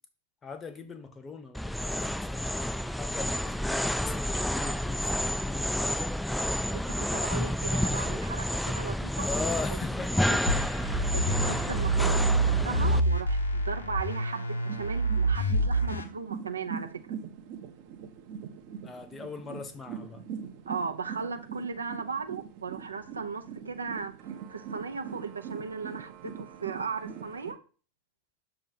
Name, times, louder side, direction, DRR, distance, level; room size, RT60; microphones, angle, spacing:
voice 1, 0.4-6.2 9.1-10.3 18.8-20.2, left 4 dB, 20° left, 0.8 m, -40 dB
sound 1, 1.5-13.0, equal, ahead, 0.3 m, -30 dB
voice 2, 6.7-9.3 10.3-17.2 20.7-24.1 24.5-27.6, right 5 dB, 75° right, 0.6 m, -37 dB
sound 2, 10.5-16.0, right 2 dB, 75° left, 1.0 m, -27 dB
sound 3, 14.6-27.5, right 7 dB, 45° right, 0.8 m, -42 dB
7.1 x 2.9 x 5.3 m
figure-of-eight pair, 90°, 0 cm